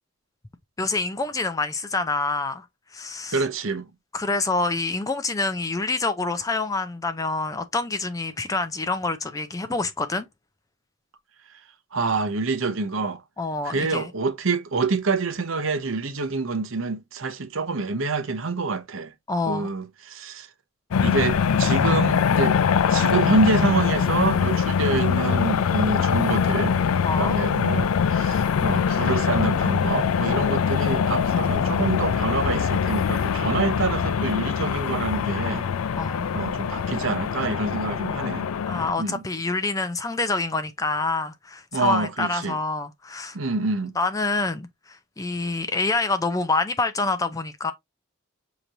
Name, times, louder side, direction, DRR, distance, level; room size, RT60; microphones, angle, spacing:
voice 1, 0.8-2.7 2.9-3.4 4.1-10.3 13.4-14.1 19.3-19.7 27.0-27.4 36.0-36.3 38.7-43.4 43.9-47.7, left 3 dB, 15° left, 0.4 m, -26 dB
voice 2, 3.3-3.9 11.9-13.2 13.6-19.1 19.5-20.5 21.0-22.6 22.9-26.8 27.1-35.7 36.3-38.5 39.0-39.2 41.7-42.6 43.3-43.9, right 3 dB, 70° right, 0.8 m, -26 dB
sound 1, 20.9-38.9, left 7 dB, 85° left, 0.4 m, -23 dB
6.6 x 3.0 x 2.6 m
head